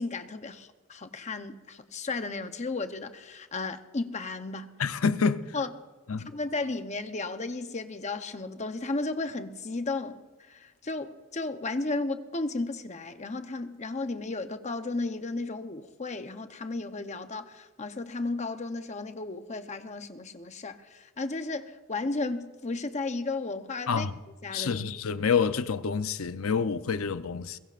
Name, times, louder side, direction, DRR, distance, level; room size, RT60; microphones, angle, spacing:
voice 1, 0.0-4.7 5.5-5.7 6.3-24.1 24.4-24.9, left 3 dB, 35° left, 0.8 m, -34 dB
voice 2, 4.8-5.6 6.1-6.3 23.9-24.1 24.5-27.6, left 5 dB, 85° left, 0.7 m, -27 dB
22.5 x 21.5 x 2.5 m
head